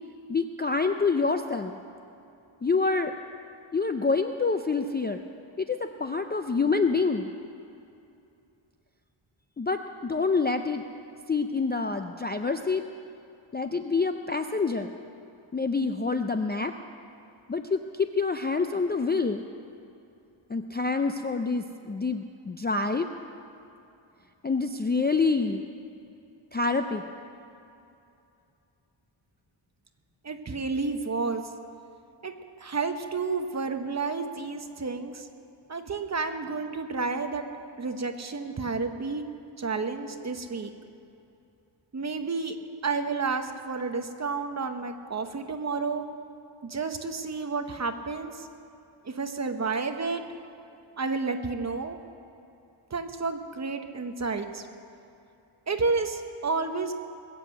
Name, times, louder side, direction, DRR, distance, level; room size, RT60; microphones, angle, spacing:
voice 1, 0.3-1.8 2.6-3.2 3.7-5.2 5.6-7.3 9.6-10.8 11.3-12.8 13.5-14.9 15.5-16.7 17.5-19.4 20.5-23.1 24.4-25.7 26.5-27.0, left 4 dB, 25° left, 6 dB, 0.3 m, -27 dB
voice 2, 30.2-31.4 32.2-32.3 32.6-35.3 35.7-37.5 37.8-39.2 39.6-40.7 41.9-42.6 42.8-46.0 46.6-48.5 49.0-50.2 51.0-52.0 52.9-54.7 55.7-56.9, right 4 dB, 35° right, 7 dB, 0.9 m, -30 dB
20.5 x 8.2 x 7.7 m, 2.7 s
wide cardioid pair, 170°, 49 cm